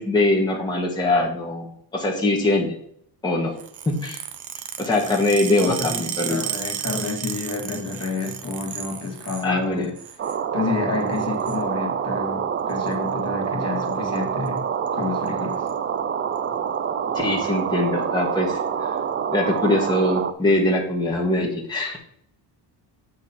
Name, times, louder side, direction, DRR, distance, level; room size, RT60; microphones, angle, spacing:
voice 1, 0.0-2.8 3.2-3.5 3.8-4.2 4.8-6.4 9.4-9.9 17.1-18.9 19.3-22.0, left 2 dB, 10° left, -2 dB, 1.5 m, -22 dB
sound 1, 3.6-9.5 9.8-10.4 11.1-11.6 12.7-12.9 13.9-14.2 14.5-14.6 14.9-15.0 15.3-15.7 16.4-16.5 17.4-17.5, right 10 dB, 65° right, 1.0 m, -33 dB
voice 2, 4.8-9.9 10.5-14.6 14.9-15.7, left 4 dB, 35° left, 2 dB, 2.0 m, -29 dB
sound 2, 10.2-20.3, right 7 dB, 30° right, 0.5 m, -26 dB
8.3 x 6.3 x 4.3 m, 0.67 s
cardioid pair, 140°, 43 cm